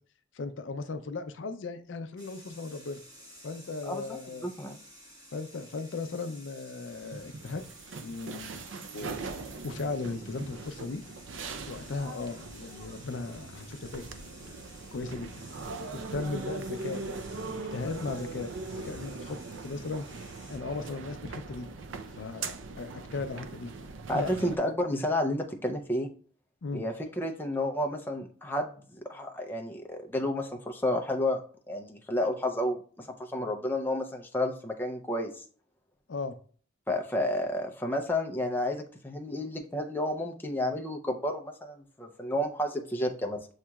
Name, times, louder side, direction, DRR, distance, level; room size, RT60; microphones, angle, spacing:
voice 1, 0.3-3.0 3.4-4.5 5.3-7.6 8.0-8.6 8.9-9.2 9.6-11.0 11.7-14.0 14.9-15.3 15.9-19.4 19.6-20.0 20.5-21.7 22.1-23.7 24.1-24.3 26.6-26.8 36.1-36.4, left 3 dB, 70° left, 8 dB, 0.5 m, -37 dB
sound 1, 2.2-20.6, equal, 20° right, 1.3 m, -53 dB
voice 2, 3.8-4.8 24.1-26.1 26.7-31.4 31.7-33.1 33.3-35.4 36.9-43.5, left 1 dB, 10° left, 2 dB, 0.5 m, -31 dB
sound 2, 6.9-24.6, right 3 dB, 70° right, 0.5 m, -41 dB
7.2 x 2.9 x 2.3 m, 0.44 s
head